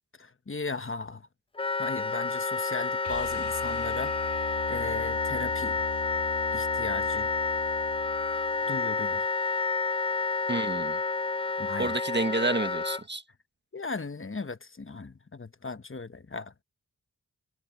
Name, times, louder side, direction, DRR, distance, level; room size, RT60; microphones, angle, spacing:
voice 1, 0.2-1.3 1.8-4.2 4.7-5.8 6.5-7.3 8.7-9.3 11.6-12.0 13.7-16.5, left 3 dB, 30° left, 1.0 m, -37 dB
Wind instrument woodwind instrument, 1.6-13.0, left 4 dB, 15° left, 0.3 m, -29 dB
sound 1, 3.0-9.0 11.5-11.6, left 5 dB, 85° left, 2.6 m, -41 dB
voice 2, 10.5-11.0 11.8-13.2, right 2 dB, 25° right, 1.5 m, -29 dB
wide cardioid pair, 60°, 40 cm